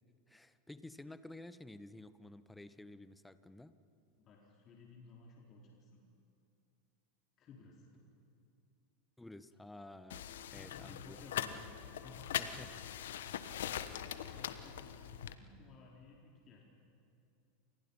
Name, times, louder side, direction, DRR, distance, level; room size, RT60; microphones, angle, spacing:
voice 1, 0.3-3.7 9.2-11.2 12.4-12.7, left 2 dB, 10° left, 13 dB, 1.2 m, -52 dB
voice 2, 4.2-6.0 7.4-7.9 10.5-11.7 11.9-12.7 13.6-16.6, left 3 dB, 40° left, -2 dB, 4.3 m, -57 dB
sound 1, 10.1-15.3, left 10 dB, 75° left, 1.1 m, -42 dB
29.0 x 27.5 x 5.7 m, 2.7 s
hypercardioid pair, 90°, 0 cm